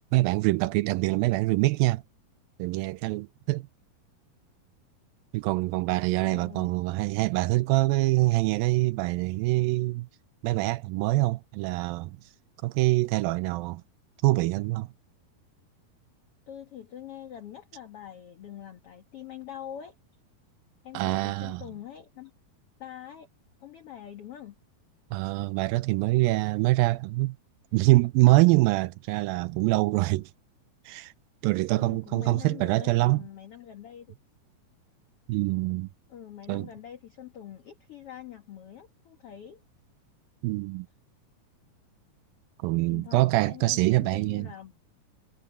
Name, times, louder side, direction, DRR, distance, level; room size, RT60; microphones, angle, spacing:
voice 1, 0.1-2.0 2.6-3.7 5.3-10.1 10.4-12.2 12.6-13.8 14.2-14.9 20.9-21.6 25.1-27.4 27.7-30.3 30.9-31.1 31.4-33.2 35.3-35.9 36.5-36.7 40.4-40.9 42.6-44.5, right 20 dB, 85° right, 2.1 m, -24 dB
voice 2, 6.2-6.7 16.5-19.9 20.8-22.3 22.8-23.3 23.6-24.6 31.7-34.1 36.1-39.6 42.7-44.7, left 10 dB, 55° left, 1.6 m, -44 dB
omnidirectional pair, 4.5 m